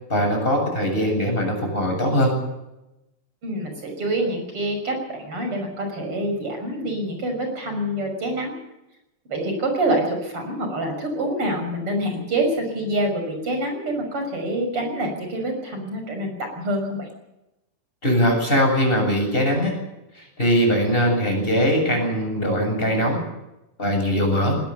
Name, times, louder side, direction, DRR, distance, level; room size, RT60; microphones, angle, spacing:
voice 1, 0.1-2.4 18.0-19.7 20.4-23.2 23.8-24.6, equal, 15° left, 1 dB, 8.1 m, -21 dB
voice 2, 3.4-8.5 9.3-17.1, right 1 dB, 40° right, 4 dB, 6.8 m, -26 dB
20.5 x 19.0 x 6.9 m, 0.93 s
omnidirectional pair, 3.7 m